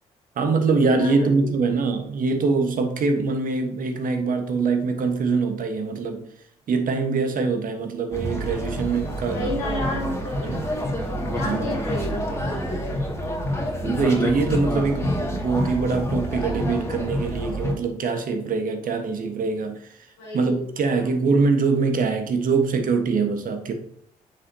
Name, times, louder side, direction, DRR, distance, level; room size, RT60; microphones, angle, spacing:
voice 1, 0.3-6.2 6.7-9.5 10.4-10.7 11.4-11.7 13.8-20.0 20.3-23.7, right 4 dB, 55° right, 5 dB, 1.3 m, -23 dB
voice 2, 1.0-1.5 9.3-10.4 11.0-13.0 20.2-21.1, left 1 dB, 75° left, -7 dB, 2.7 m, -32 dB
sound 1, 8.1-17.7, equal, 15° left, 2.1 m, -27 dB
7.6 x 6.2 x 2.8 m, 0.70 s
hypercardioid pair, 45°, 17 cm